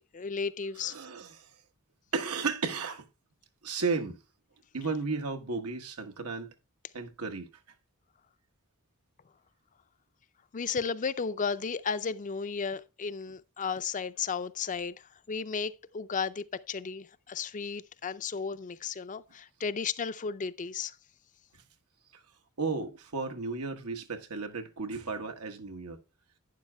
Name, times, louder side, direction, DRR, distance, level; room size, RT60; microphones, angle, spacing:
voice 1, 0.1-1.0 10.5-21.0, left 5 dB, 35° left, 0.5 m, -34 dB
voice 2, 0.8-1.5 2.1-3.0 3.6-4.2 4.7-6.5 6.9-7.5 22.1-22.2 22.6-26.0, right 4 dB, 85° right, 1.3 m, -34 dB
11.5 x 9.9 x 2.3 m
head